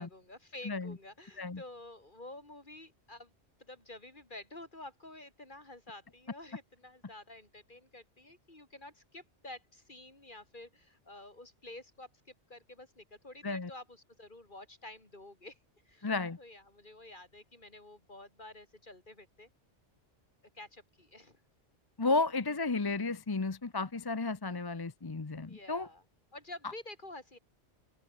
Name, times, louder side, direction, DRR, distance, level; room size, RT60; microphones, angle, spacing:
voice 1, 0.0-3.3 3.6-12.1 12.5-15.6 15.8-16.1 16.4-19.5 20.5-21.4 25.5-26.0 26.3-27.4, left 2 dB, 45° left, 4.3 m, -50 dB
voice 2, 16.0-16.4 22.0-25.9, left 3 dB, 25° left, 0.7 m, -33 dB
open air
omnidirectional pair, 1.2 m